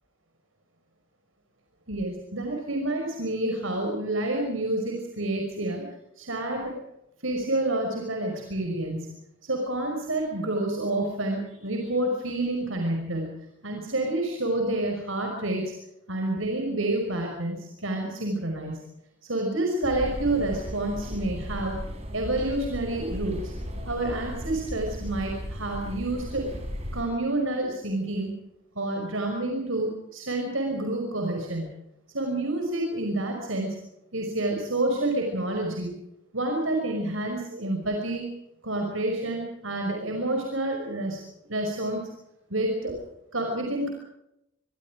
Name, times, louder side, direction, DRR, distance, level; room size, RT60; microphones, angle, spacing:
voice 1, 1.9-5.9 6.2-6.8 7.2-9.1 9.4-13.3 13.6-15.7 16.1-18.8 19.2-21.8 22.1-23.5 23.9-26.5 26.9-28.3 28.8-31.7 32.1-33.8 34.1-35.9 36.3-38.2 38.6-41.2 41.5-42.1 42.5-42.9 43.3-43.9, right 1 dB, 75° right, 2 dB, 5.7 m, -28 dB
sound 1, 19.8-27.0, equal, 30° right, 7.1 m, -36 dB
25.5 x 25.0 x 5.1 m, 0.84 s
head